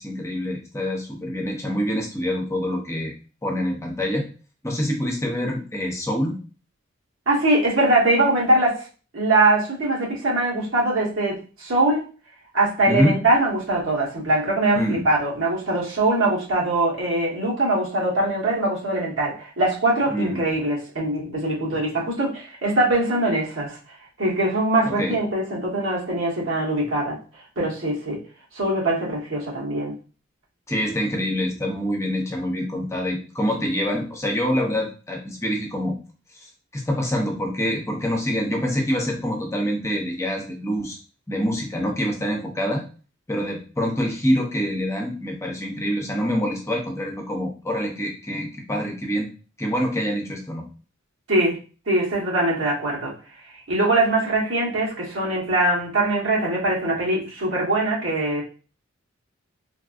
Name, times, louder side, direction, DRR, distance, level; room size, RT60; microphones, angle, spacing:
voice 1, 0.0-3.1 3.4-4.3 4.6-6.4 12.9-13.2 14.7-15.0 20.1-20.4 24.9-25.2 30.7-36.0 36.4-41.0 41.3-42.8 43.3-49.3 49.6-50.6, equal, 15° left, 1 dB, 0.6 m, -25 dB
voice 2, 7.3-8.9 9.1-12.1 12.5-27.2 27.6-28.2 28.5-29.9 51.3-51.6 51.9-53.1 53.7-58.4, right 2 dB, 80° right, -4 dB, 1.3 m, -22 dB
3.3 x 2.5 x 2.4 m, 0.36 s
head